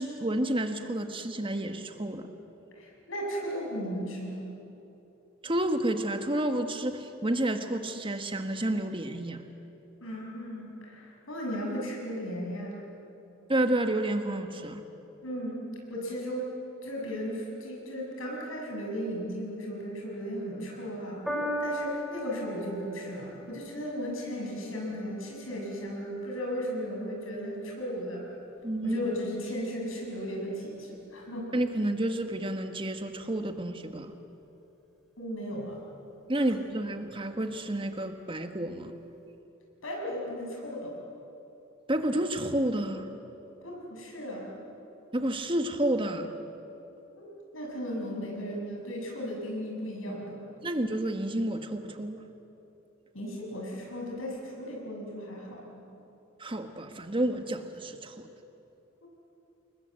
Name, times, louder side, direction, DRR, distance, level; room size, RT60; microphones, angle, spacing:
voice 1, 0.0-2.3 5.4-9.4 13.5-14.8 28.6-29.0 31.5-34.1 36.3-38.9 41.9-43.0 45.1-46.3 50.6-52.2 56.4-58.3, right 1 dB, 25° right, 7 dB, 1.5 m, -30 dB
voice 2, 2.7-4.5 10.0-12.8 15.2-15.6 15.9-16.5 16.8-21.2 21.6-28.2 28.8-31.5 35.2-35.8 36.4-36.5 39.8-40.9 43.6-44.5 47.2-50.4 53.1-55.8 59.0-59.1, equal, 80° left, -1 dB, 7.0 m, -36 dB
Piano, 21.3-27.8 28.7-28.8, equal, ahead, 4.4 m, -39 dB
29.0 x 21.0 x 7.8 m, 2.9 s
head